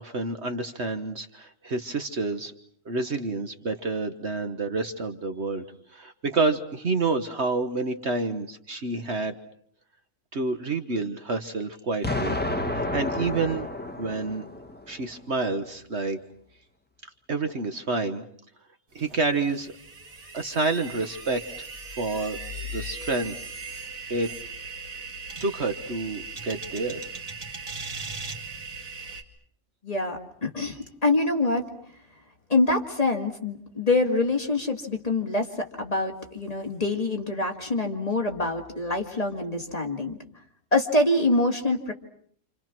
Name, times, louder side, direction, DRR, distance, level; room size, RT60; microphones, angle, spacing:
voice 1, 0.0-2.5 2.8-5.6 5.9-9.4 10.3-12.4 12.7-13.7 14.0-14.4 14.9-16.2 17.3-18.2 18.9-19.7 20.3-21.4 22.0-22.4 22.7-23.3 24.1-24.3 25.4-27.0, right 3 dB, 50° right, 7 dB, 1.5 m, -28 dB
Explosion, 12.0-15.0, left 2 dB, 5° left, 1.4 m, -30 dB
sound 1, 19.0-29.2, right 3 dB, 70° right, 2.9 m, -38 dB
voice 2, 29.8-31.6 32.5-35.5 35.8-40.2 40.7-41.9, left 2 dB, 25° left, 3 dB, 2.4 m, -25 dB
28.5 x 28.0 x 6.1 m, 0.62 s
omnidirectional pair, 1.5 m